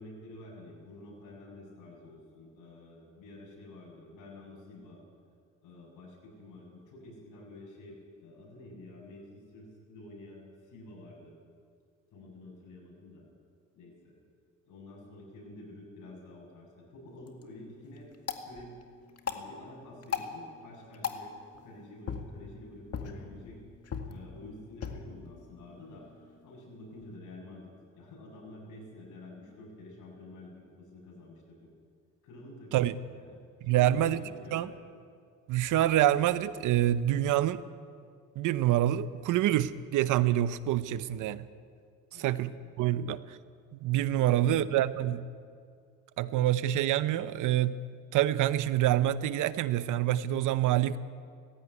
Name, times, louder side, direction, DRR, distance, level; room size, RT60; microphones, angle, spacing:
voice 1, 0.0-5.0 5.6-11.3 12.1-13.3 13.7-14.1 14.6-18.1 18.4-18.7 19.2-21.3 21.6-23.6 24.1-26.1 26.4-31.7 32.2-34.7 42.1-42.7 44.2-44.9, left 2 dB, 80° left, -1 dB, 7.4 m, -49 dB
sound 1, 17.1-27.2, left 6 dB, 55° left, 2.1 m, -41 dB
voice 2, 33.6-34.2 34.5-34.7 35.5-37.6 38.4-41.5 42.2-43.4 43.7-45.2 46.2-47.8 48.1-51.0, right 12 dB, 85° right, 14 dB, 0.9 m, -26 dB
18.5 x 15.5 x 9.6 m, 2.2 s
cardioid pair, 90°, 30 cm